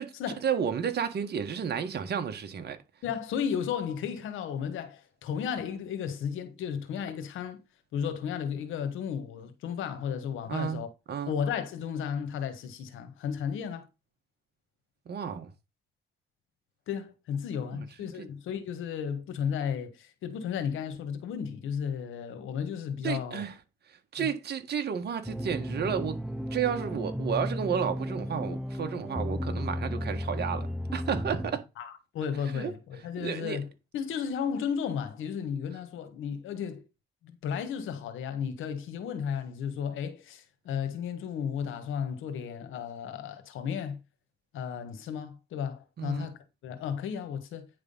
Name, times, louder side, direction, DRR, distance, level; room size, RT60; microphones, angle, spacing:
voice 1, 0.4-2.8 10.5-10.8 11.1-11.3 15.0-15.5 17.7-17.8 18.2-18.3 23.0-23.6 23.9-26.2 26.5-31.6 32.5-32.7 33.2-33.6 46.0-46.3, right 7 dB, 55° right, 1.6 m, -32 dB
voice 2, 3.0-7.6 7.9-10.9 11.3-13.9 16.9-23.4 24.2-24.3 31.8-33.7 33.9-36.8 37.2-44.0 44.5-46.4 46.6-47.7, left 7 dB, 85° left, 1.5 m, -34 dB
sound 1, 25.2-31.5, equal, ahead, 0.8 m, -34 dB
9.5 x 3.7 x 5.5 m
cardioid pair, 90°, 20 cm